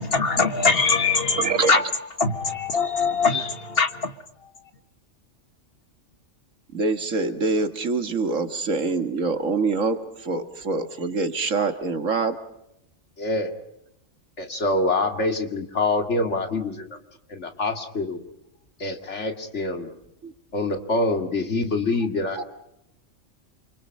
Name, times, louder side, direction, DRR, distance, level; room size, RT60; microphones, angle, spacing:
voice 1, 0.0-1.4 1.7-1.8 2.2-4.1, left 4 dB, 50° left, 1.7 m, -22 dB
voice 2, 1.4-1.8 3.0-3.4 6.7-12.4 20.2-20.3 22.4-22.5, right 4 dB, 90° right, 2.2 m, -25 dB
voice 3, 13.2-13.5 14.4-16.9 17.3-18.2 18.8-19.9 20.5-22.4, left 2 dB, 65° left, 2.6 m, -25 dB
29.0 x 25.0 x 5.4 m
omnidirectional pair, 1.3 m